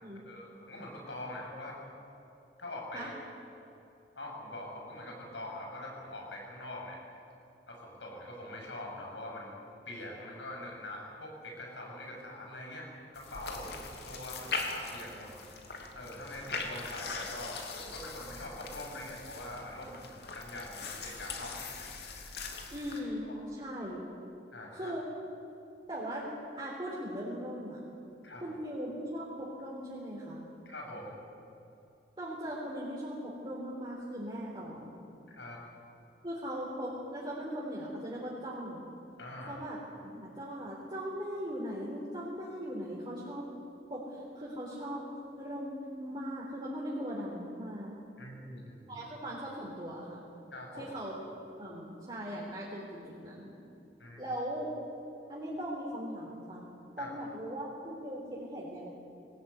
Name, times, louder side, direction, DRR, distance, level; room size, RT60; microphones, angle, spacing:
voice 1, 0.2-1.7 2.6-3.1 4.2-7.0 7.7-12.9 13.1-13.7 14.1-15.3 15.9-21.6 23.2-23.4 24.5-25.0 28.2-28.4 30.7-31.2 35.3-35.6 39.2-39.6 48.2-49.1 50.5-51.0 54.0-54.3 57.0-57.1, left 1 dB, 85° left, -1 dB, 7.2 m, -43 dB
sound 1, 13.2-23.0, left 4 dB, 65° left, 3.0 m, -41 dB
voice 2, 22.7-23.3 23.5-24.0 24.7-25.0 25.9-26.2 26.6-27.8 28.4-30.4 32.2-35.0 36.2-38.8 39.5-43.4 43.9-45.0 45.4-45.7 46.0-47.9 48.9-50.2 50.8-51.2 51.6-53.5 54.2-54.7 55.3-56.6 57.0-58.9, equal, 25° right, -6 dB, 3.9 m, -39 dB
22.0 x 18.5 x 9.5 m, 2.8 s
head